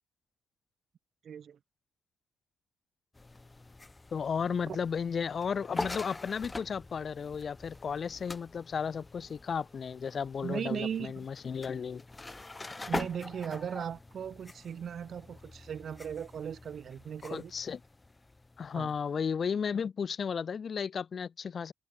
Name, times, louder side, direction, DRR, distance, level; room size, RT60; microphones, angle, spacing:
voice 1, 1.2-1.6 4.7-4.8 10.4-11.1 12.9-17.5 18.8-18.9, right 8 dB, 55° right, 0.6 m, -37 dB
sound 1, 3.1-19.2, left 2 dB, 20° left, 1.1 m, -44 dB
voice 2, 4.1-12.0 17.2-17.8 18.6-21.7, left 6 dB, 45° left, 0.5 m, -34 dB
cardioid pair, 90°, 0 cm